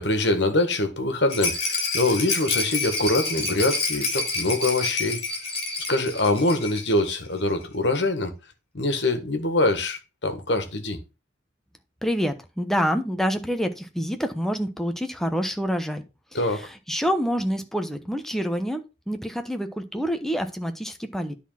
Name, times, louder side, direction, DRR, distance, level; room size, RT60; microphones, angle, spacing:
voice 1, 0.0-5.2 5.9-8.3 8.7-11.0 16.3-16.7, left 2 dB, 70° left, 1.7 m, -24 dB
Rattle, 1.3-7.0 7.3-7.4 7.6-7.7, left 4 dB, 35° left, 2.9 m, -28 dB
voice 2, 12.0-16.0 16.3-21.3, equal, ahead, 1.0 m, -27 dB
10.0 x 4.2 x 5.7 m
head